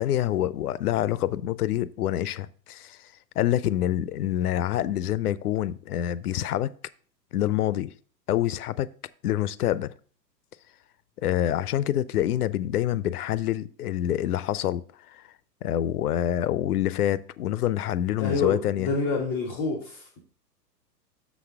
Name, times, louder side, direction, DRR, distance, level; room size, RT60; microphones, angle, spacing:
voice 1, 0.0-3.0 3.4-6.7 7.3-7.9 8.3-8.9 9.2-9.9 11.2-14.8 15.1-15.2 15.6-18.9, left 12 dB, 65° left, 0.5 m, -26 dB
voice 2, 18.2-20.2, left 3 dB, 5° left, 0.3 m, -28 dB
6.9 x 6.2 x 3.4 m
figure-of-eight pair, 110°, 50 cm